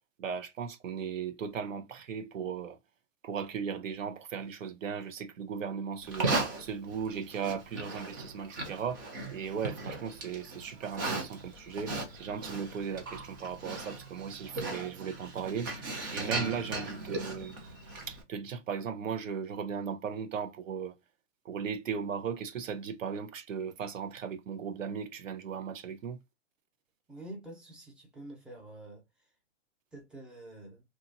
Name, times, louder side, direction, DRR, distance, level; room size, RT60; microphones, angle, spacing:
voice 1, 0.2-2.8 3.2-6.3 6.6-9.0 9.3-15.7 16.1-17.5 18.1-20.9 21.4-26.2, right 7 dB, 85° right, 0.8 m, -37 dB
Livestock farm animals working animals, 6.0-18.2, right 3 dB, 20° right, 0.3 m, -37 dB
voice 2, 27.1-29.0 29.9-30.8, right 1 dB, ahead, 0.7 m, -47 dB
2.9 x 2.5 x 2.5 m
hypercardioid pair, 135°, 38 cm